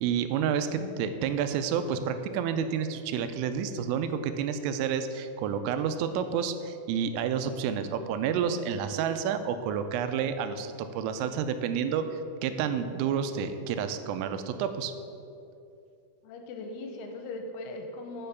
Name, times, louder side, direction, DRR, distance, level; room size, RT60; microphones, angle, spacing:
voice 1, 0.0-14.9, right 7 dB, 90° right, 9 dB, 3.2 m, -30 dB
voice 2, 0.8-1.2 16.2-18.3, left 2 dB, 80° left, 4 dB, 3.0 m, -40 dB
7.7 x 6.5 x 6.8 m, 2.6 s
omnidirectional pair, 5.8 m